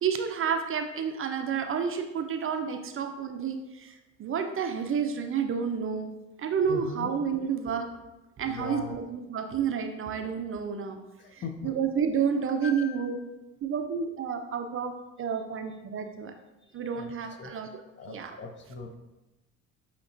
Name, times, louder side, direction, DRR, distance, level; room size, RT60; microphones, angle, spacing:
voice 1, 0.0-6.1 6.4-7.9 8.4-11.0 11.3-13.2 13.6-14.9 15.2-16.3 16.7-17.7 18.1-18.4, right 7 dB, 35° right, 6 dB, 0.4 m, -30 dB
voice 2, 6.7-7.1 8.5-9.0 11.2-11.7 12.6-13.1 16.9-17.1 17.4-17.5 18.0-19.0, left 4 dB, 30° left, 6 dB, 0.4 m, -39 dB
5.9 x 2.9 x 2.5 m, 1.0 s
hypercardioid pair, 65°, 39 cm